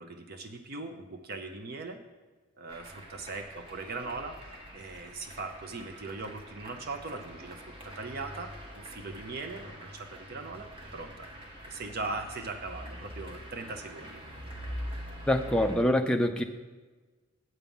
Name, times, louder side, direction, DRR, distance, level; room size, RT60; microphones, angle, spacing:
voice 1, 0.0-2.0 2.6-11.3 11.6-14.2, right 3 dB, 45° right, 6 dB, 0.6 m, -40 dB
sound 1, 2.7-15.8, equal, 25° right, 1.1 m, -44 dB
voice 2, 15.3-16.4, left 1 dB, 5° left, 4 dB, 0.4 m, -25 dB
8.0 x 7.1 x 5.4 m, 1.3 s
head